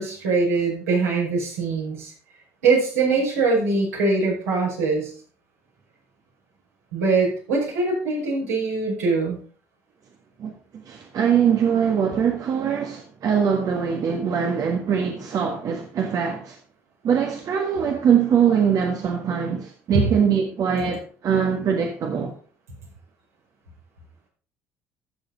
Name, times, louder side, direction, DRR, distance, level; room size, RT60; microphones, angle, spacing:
voice 1, 0.0-2.1 2.6-5.1 6.9-9.4 19.9-20.0, right 3 dB, 80° right, 5.3 m, -22 dB
voice 2, 10.4-16.6 17.0-22.3, right 7 dB, 50° right, 1.6 m, -22 dB
14.0 x 7.1 x 4.0 m
hypercardioid pair, 55°, 8 cm